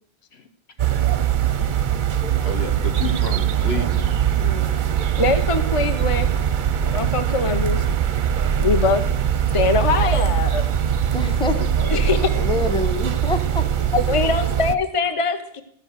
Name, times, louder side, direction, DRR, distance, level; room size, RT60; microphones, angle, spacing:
sound 1, 0.8-14.8, right 9 dB, 55° right, 0.7 m, -21 dB
voice 1, 2.4-4.1 11.5-12.6, left 3 dB, 70° left, 7 dB, 1.5 m, -32 dB
voice 2, 4.4-4.8 11.1-11.6 12.4-13.7, left 3 dB, 5° left, 7 dB, 1.0 m, -26 dB
voice 3, 5.2-6.3 6.9-7.8 8.6-9.0 9.5-10.6 11.9-12.2 13.9-15.6, left 4 dB, 30° left, 9 dB, 0.9 m, -22 dB
13.5 x 7.2 x 8.0 m, 0.66 s
omnidirectional pair, 1.1 m